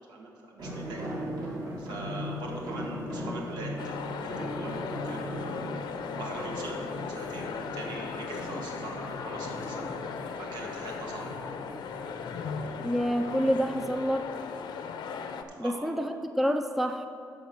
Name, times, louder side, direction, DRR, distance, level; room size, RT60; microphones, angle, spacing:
voice 1, 0.1-1.0 1.8-5.7 6.2-6.8 7.1-9.9 10.4-11.3 15.6-16.0, right 2 dB, 80° right, 0 dB, 1.7 m, -42 dB
sound 1, 0.6-14.1, equal, 50° right, 2.5 m, -39 dB
sound 2, 3.8-15.4, left 6 dB, 85° left, 0.6 m, -38 dB
voice 2, 12.8-14.3 15.6-17.1, equal, ahead, 7 dB, 0.4 m, -28 dB
13.0 x 4.9 x 6.1 m, 2.4 s
cardioid pair, 140°, 7 cm